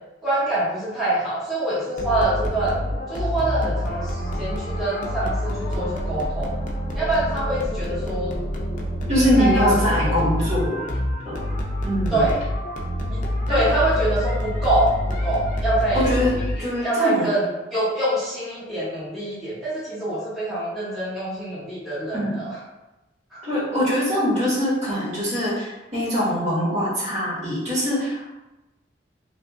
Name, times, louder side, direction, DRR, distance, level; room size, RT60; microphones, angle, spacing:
voice 1, 0.2-2.7 3.1-6.5 6.9-8.3 9.2-10.1 12.1-12.4 13.1-16.3 16.6-22.5 23.3-23.4, right 1 dB, ahead, -11 dB, 1.0 m, -25 dB
sound 1, 2.0-16.9, left 1 dB, 45° left, 0.5 m, -27 dB
voice 2, 9.1-10.8 11.2-11.4 11.8-12.2 13.5-13.7 15.9-17.3 22.1-22.3 23.4-28.4, equal, 40° right, -7 dB, 1.2 m, -23 dB
2.9 x 2.5 x 3.4 m, 1.0 s
head